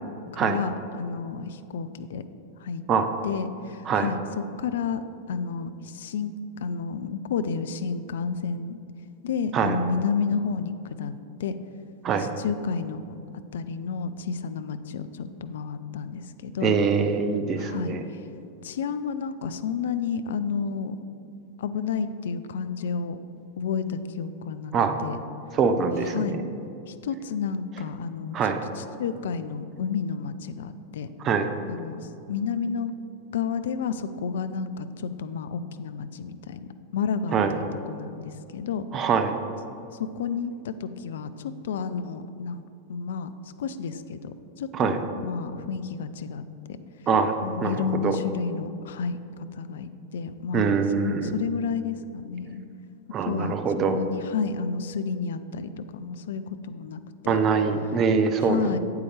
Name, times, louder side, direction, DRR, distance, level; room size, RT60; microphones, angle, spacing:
voice 1, 0.3-2.2 2.6-2.8 3.2-4.2 4.6-6.3 6.6-8.8 9.2-11.1 11.4-11.5 12.4-13.0 13.5-16.7 17.6-18.0 18.6-21.0 21.6-23.2 23.6-24.7 25.0-25.2 26.1-26.4 26.9-28.4 28.8-31.1 31.7-32.0 32.3-32.9 33.3-36.6 36.9-38.8 40.2-42.6 42.9-43.3 43.6-46.4 47.4-49.2 49.5-52.6 53.2-57.0 57.2-57.4 58.5-58.8, left 6 dB, 60° left, 11 dB, 0.3 m, -31 dB
voice 2, 16.6-18.0 24.7-24.9 25.5-26.4 28.3-28.6 31.2-31.5 37.3-37.6 38.9-39.3 44.7-45.0 47.1-47.3 47.6-48.2 50.5-51.3 53.1-54.0 57.3-58.8, right 5 dB, 30° right, 8 dB, 0.6 m, -24 dB
8.3 x 8.1 x 3.3 m, 2.7 s
figure-of-eight pair, 90°, 0 cm